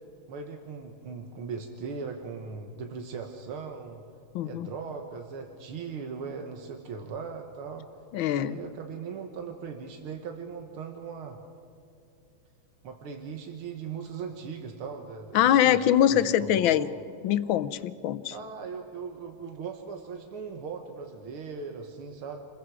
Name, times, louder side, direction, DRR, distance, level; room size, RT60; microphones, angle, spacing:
voice 1, 0.3-4.0 4.4-7.8 8.3-11.4 12.8-17.0 18.3-22.4, right 5 dB, 90° right, 4 dB, 2.2 m, -39 dB
voice 2, 4.3-4.7 8.1-8.6 15.3-16.9 17.2-18.3, left 11 dB, 75° left, 14 dB, 1.5 m, -23 dB
28.5 x 21.5 x 4.8 m, 2.7 s
omnidirectional pair, 2.3 m